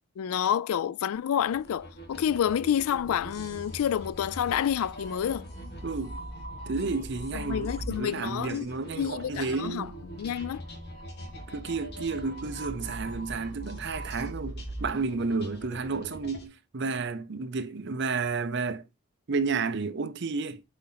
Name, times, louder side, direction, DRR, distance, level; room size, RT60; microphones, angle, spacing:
voice 1, 0.2-5.5 7.3-8.7 9.0-9.9 10.1-10.6, left 9 dB, 80° left, 0.3 m, -28 dB
sound 1, 1.4-16.4, right 1 dB, 50° left, 1.7 m, -41 dB
voice 2, 5.8-6.2 6.7-9.9 11.5-18.8 19.3-20.6, right 4 dB, 50° right, 0.6 m, -31 dB
7.7 x 4.3 x 3.9 m
head